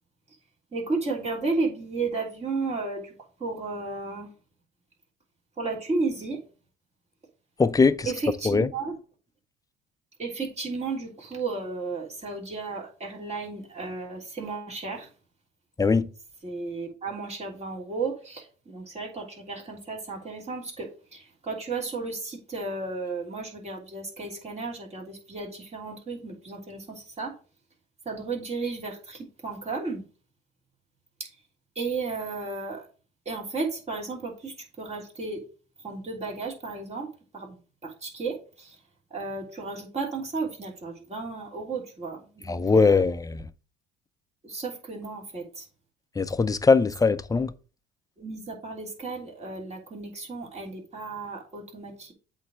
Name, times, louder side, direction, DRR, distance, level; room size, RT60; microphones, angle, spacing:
voice 1, 0.7-3.1 3.4-4.3 5.6-6.4 8.0-9.0 10.2-15.1 16.4-27.3 28.0-30.0 31.2-31.3 31.7-32.8 33.2-35.4 35.8-37.1 37.3-38.8 39.1-43.0 44.4-45.6 48.2-52.1, right 3 dB, 30° right, 3.1 m, -33 dB
voice 2, 7.6-8.1 8.5-8.7 15.8-16.1 42.5-43.4 46.2-47.5, left 4 dB, 15° left, 0.6 m, -21 dB
8.1 x 3.3 x 6.2 m
supercardioid pair, 75°, 21 cm